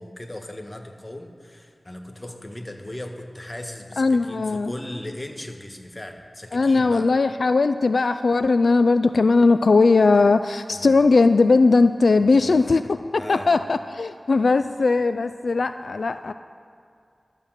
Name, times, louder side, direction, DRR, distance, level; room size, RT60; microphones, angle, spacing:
voice 1, 0.0-7.1 10.7-11.0 12.4-13.5, left 1 dB, 25° left, 3 dB, 1.5 m, -38 dB
voice 2, 4.0-4.7 6.5-16.3, left 3 dB, 80° left, 10 dB, 0.3 m, -19 dB
12.5 x 7.9 x 7.4 m, 2.3 s
wide cardioid pair, 50°, 0 cm